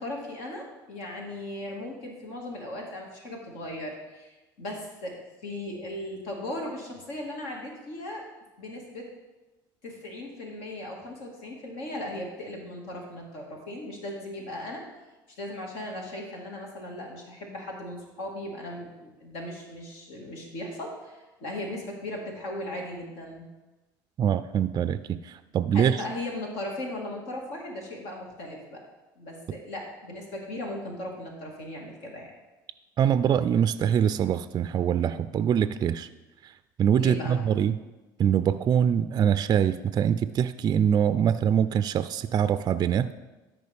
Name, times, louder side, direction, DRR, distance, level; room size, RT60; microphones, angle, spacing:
voice 1, 0.0-8.3 8.6-9.1 9.8-14.8 15.4-23.5 25.7-28.8 29.2-32.3 37.0-37.4, left 1 dB, 75° left, 0 dB, 2.0 m, -37 dB
voice 2, 24.2-26.0 33.0-36.1 36.8-37.8 38.2-43.1, right 8 dB, 40° right, 13 dB, 0.4 m, -24 dB
13.0 x 5.0 x 3.5 m, 1.1 s
hypercardioid pair, 80°, 11 cm